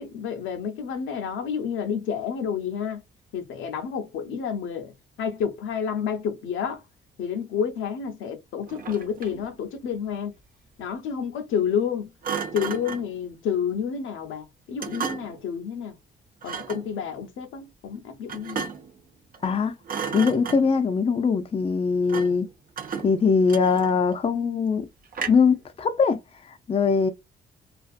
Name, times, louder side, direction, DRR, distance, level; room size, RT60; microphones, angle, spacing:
voice 1, 0.0-3.0 3.3-4.9 5.2-6.8 7.2-10.3 10.8-12.1 12.5-15.9 16.4-18.7, left 7 dB, 80° left, 0.6 m, -29 dB
Thump thud, 8.7-9.5 12.2-13.1 14.8-15.4 16.4-16.9 18.3-19.0 19.3-19.6 19.8-20.9 22.1-22.4 22.8-24.1 25.1-25.6, right 6 dB, 45° right, 0.7 m, -34 dB
voice 2, 19.4-19.7 20.1-22.5 23.0-24.8 25.3-26.2 26.7-27.1, left 5 dB, 30° left, 0.5 m, -21 dB
2.5 x 2.4 x 2.4 m
cardioid pair, 90°, 20 cm